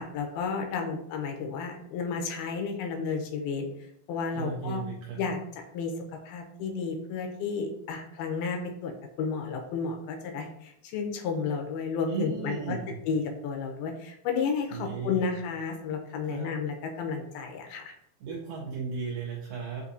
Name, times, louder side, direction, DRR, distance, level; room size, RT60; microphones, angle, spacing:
voice 1, 0.0-3.7 4.1-4.8 5.2-5.4 5.7-5.9 6.3-8.9 9.2-12.8 13.1-18.0, left 5 dB, 80° left, 3 dB, 2.3 m, -32 dB
voice 2, 4.3-5.3 12.1-12.9 14.7-15.3 16.3-16.5 18.2-19.8, right 5 dB, 85° right, -2 dB, 1.9 m, -35 dB
6.5 x 2.7 x 2.6 m, 0.72 s
omnidirectional pair, 4.6 m